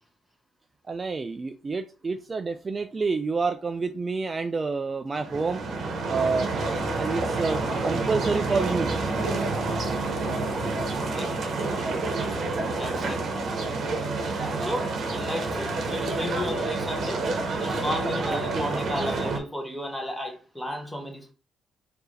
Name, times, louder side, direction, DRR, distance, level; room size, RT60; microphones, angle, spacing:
voice 1, 0.9-5.6 6.0-6.5 7.0-8.9 18.3-18.7, right 4 dB, 30° right, 0.3 m, -28 dB
sound 1, 5.1-19.4, right 3 dB, 60° right, 0.9 m, -28 dB
voice 2, 10.9-11.4 12.7-13.4 14.6-17.3 17.6-21.3, left 1 dB, 5° left, 1.4 m, -34 dB
4.5 x 2.7 x 3.2 m
cardioid pair, 90°, 0 cm